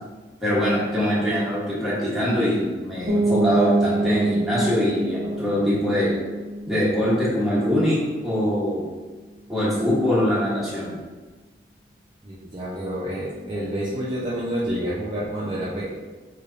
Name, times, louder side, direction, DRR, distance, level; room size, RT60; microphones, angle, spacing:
voice 1, 0.4-6.1 6.7-8.8 9.5-10.9, equal, ahead, -10 dB, 1.1 m, -23 dB
sound 1, 3.1-8.7, right 2 dB, 85° right, 0.5 m, -27 dB
voice 2, 12.2-15.9, equal, 25° right, -8 dB, 0.5 m, -28 dB
3.2 x 2.4 x 3.8 m, 1.3 s
head